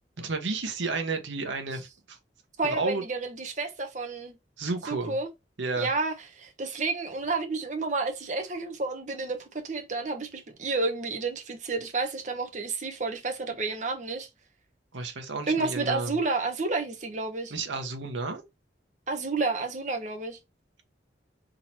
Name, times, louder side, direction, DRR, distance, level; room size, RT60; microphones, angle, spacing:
voice 1, 0.2-2.2 2.6-3.0 4.6-5.2 5.6-5.9 14.9-16.2 17.5-18.4, right 3 dB, 85° right, 1.1 m, -32 dB
voice 2, 2.6-4.4 4.9-5.3 5.8-14.3 15.5-17.5 19.1-20.4, right 3 dB, 40° right, 1.0 m, -30 dB
3.8 x 3.0 x 4.2 m
head